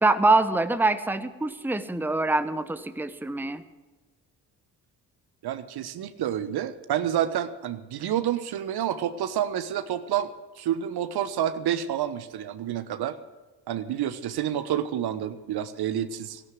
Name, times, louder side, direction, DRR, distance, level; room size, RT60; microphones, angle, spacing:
voice 1, 0.0-3.6, right 2 dB, 5° right, 12 dB, 1.0 m, -24 dB
voice 2, 5.4-13.2 13.7-16.4, right 10 dB, 55° right, 13 dB, 1.1 m, -29 dB
16.0 x 11.5 x 7.7 m, 1.2 s
hypercardioid pair, 45°, 47 cm